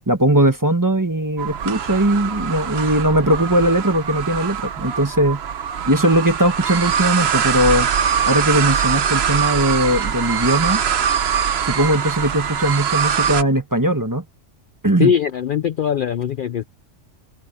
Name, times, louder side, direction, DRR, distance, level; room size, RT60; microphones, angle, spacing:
voice 1, 0.1-5.4 5.9-7.9 8.3-10.8 11.6-14.2 14.8-15.1, right 1 dB, 15° right, 1.2 m, -19 dB
sound 1, 1.4-13.4, right 8 dB, 60° right, 1.0 m, -22 dB
voice 2, 15.0-16.6, left 8 dB, 55° left, 0.6 m, -20 dB
omnidirectional pair, 1.3 m